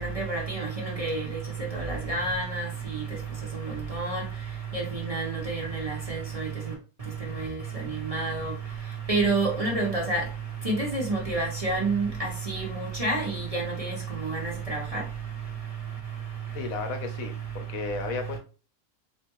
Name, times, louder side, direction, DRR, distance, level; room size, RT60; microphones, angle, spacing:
voice 1, 0.0-1.3 1.7-2.7 3.9-4.2 4.7-4.8 5.1-6.5 8.1-8.5 9.1-10.2 10.6-13.9 14.7-15.0, right 2 dB, 25° right, 1.1 m, -28 dB
voice 2, 16.5-18.4, left 5 dB, 70° left, 1.2 m, -34 dB
4.2 x 3.4 x 3.0 m
omnidirectional pair, 1.6 m